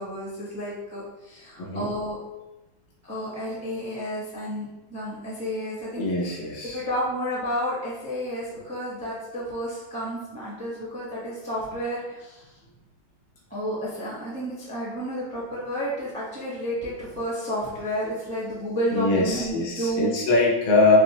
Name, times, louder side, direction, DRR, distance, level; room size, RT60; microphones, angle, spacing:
voice 1, 0.0-2.2 3.0-6.0 6.7-12.5 13.5-20.1, equal, 15° right, -7 dB, 0.5 m, -31 dB
voice 2, 1.6-1.9 6.0-6.8 18.9-21.0, left 3 dB, 85° left, -2 dB, 1.7 m, -22 dB
6.1 x 2.0 x 2.8 m, 1.0 s
omnidirectional pair, 2.1 m